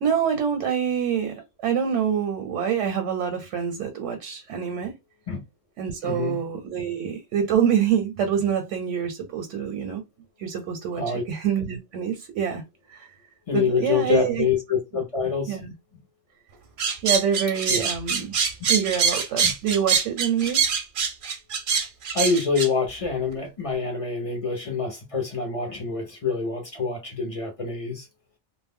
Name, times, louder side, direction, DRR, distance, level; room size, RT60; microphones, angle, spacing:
voice 1, 0.0-4.9 5.8-10.0 10.4-12.6 12.9-13.1 13.5-14.4 15.5-15.7 17.0-18.3 18.7-20.7, right 8 dB, 85° right, 0.9 m, -26 dB
voice 2, 6.0-6.4 11.0-11.2 13.5-15.6 17.7-17.9 19.4-19.5 22.1-28.1, left 5 dB, 50° left, 0.4 m, -26 dB
sound 1, 16.8-22.7, right 6 dB, 60° right, 0.6 m, -24 dB
2.1 x 2.0 x 3.5 m
omnidirectional pair, 1.2 m